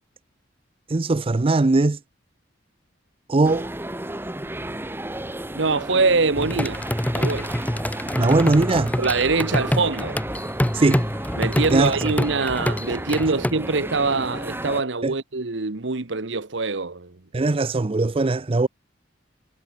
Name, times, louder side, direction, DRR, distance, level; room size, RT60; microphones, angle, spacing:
voice 1, 0.9-2.0 3.3-3.7 8.2-8.9 10.7-11.0 11.7-12.0 15.0-15.1 17.3-18.7, right 2 dB, 30° right, 0.5 m, -20 dB
sound 1, 3.4-14.8, right 1 dB, 10° right, 1.8 m, -33 dB
voice 2, 5.5-6.8 7.1-7.5 9.0-10.2 11.4-17.5, right 3 dB, 65° right, 1.2 m, -24 dB
sound 2, 6.4-13.5, left 1 dB, 10° left, 0.8 m, -26 dB
head